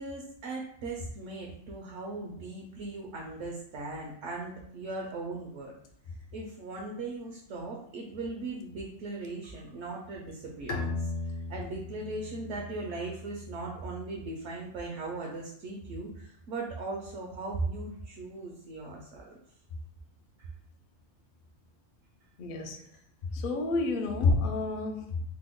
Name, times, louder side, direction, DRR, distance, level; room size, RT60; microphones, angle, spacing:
voice 1, 0.0-5.7 6.3-11.1 11.5-19.2, right 3 dB, 70° right, -1 dB, 0.9 m, -38 dB
Bowed string instrument, 10.7-14.2, left 2 dB, 85° left, 1.0 m, -37 dB
voice 2, 22.4-22.8 23.3-25.2, left 3 dB, 65° left, 4 dB, 0.5 m, -29 dB
2.9 x 2.1 x 3.5 m, 0.68 s
omnidirectional pair, 1.3 m